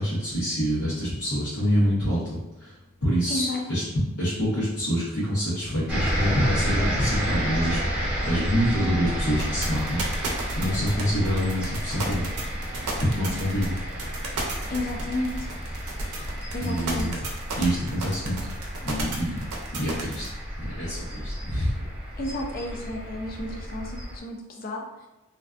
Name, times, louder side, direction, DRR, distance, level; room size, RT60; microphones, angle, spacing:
voice 1, 0.0-3.8 4.2-7.8 8.2-10.0 10.6-12.4 13.0-13.8 16.2-16.3 16.6-17.2 17.6-18.4 18.8-19.4 19.7-20.2 20.6-21.7, equal, 85° left, -11 dB, 0.8 m, -26 dB
voice 2, 3.3-3.6 14.7-15.5 16.5-17.1 22.2-25.1, left 1 dB, 45° left, 1 dB, 0.4 m, -32 dB
sound 1, 5.9-24.2, equal, 5° right, 0.7 m, -31 dB
sound 2, 9.4-20.3, right 3 dB, 85° right, 0.5 m, -33 dB
2.5 x 2.2 x 2.3 m, 1.0 s
head